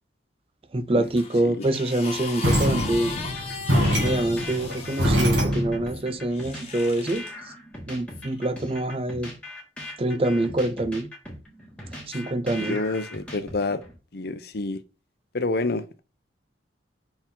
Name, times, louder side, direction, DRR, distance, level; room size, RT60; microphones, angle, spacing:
voice 1, 0.7-3.2 4.0-7.2 7.9-9.3 10.0-11.1 12.1-12.8, right 1 dB, 30° right, 0.5 m, -25 dB
sound 1, 1.1-5.4 6.3-7.3 8.2-8.4, left 5 dB, 35° left, 1.3 m, -37 dB
sound 2, 2.4-5.9, equal, 90° right, 2.7 m, -24 dB
sound 3, 3.2-14.0, left 1 dB, 5° left, 1.7 m, -40 dB
voice 2, 12.6-13.8 14.1-14.8 15.3-16.0, left 3 dB, 60° left, 0.7 m, -28 dB
5.6 x 4.5 x 3.8 m
head